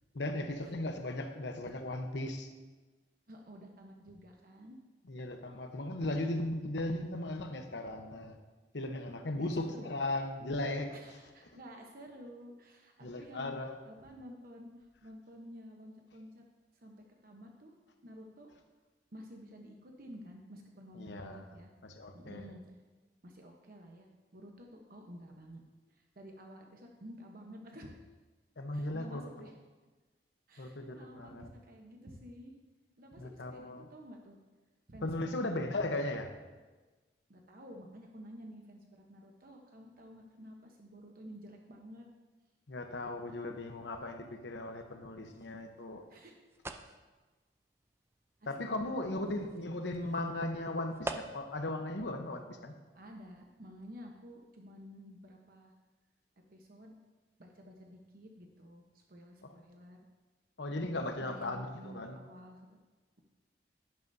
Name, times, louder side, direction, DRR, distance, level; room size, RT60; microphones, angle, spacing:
voice 1, 0.1-2.5 5.1-8.3 8.7-10.9 13.0-13.8 20.9-21.4 21.8-22.5 28.6-29.5 30.6-31.5 33.2-33.8 35.0-36.3 42.7-46.0 48.5-52.7 60.6-62.2, left 1 dB, 80° left, 5 dB, 0.9 m, -37 dB
voice 2, 3.3-4.8 9.4-9.9 10.9-13.5 13.8-16.4 16.7-17.7 18.0-18.5 19.1-21.7 22.1-22.8 23.2-24.1 24.3-25.6 25.9-27.9 28.7-29.6 30.5-32.6 33.0-34.4 34.9-35.9 37.3-42.1 46.1-46.3 48.4-49.2 52.9-55.7 56.5-57.0 57.4-60.0 61.2-62.6, equal, 55° right, 2 dB, 1.0 m, -51 dB
sound 1, 45.3-51.7, right 2 dB, 15° right, 0.5 m, -48 dB
11.0 x 10.5 x 2.7 m, 1.3 s
head